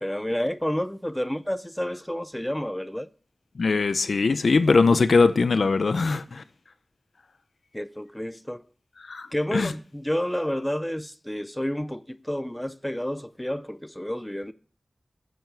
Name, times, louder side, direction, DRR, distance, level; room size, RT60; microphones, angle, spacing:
voice 1, 0.0-3.1 7.7-8.6 9.3-14.5, equal, 10° left, 0.5 m, -30 dB
voice 2, 3.6-6.4 9.0-9.7, left 4 dB, 90° left, 0.6 m, -21 dB
9.4 x 6.9 x 6.8 m
wide cardioid pair, 60°, 0 cm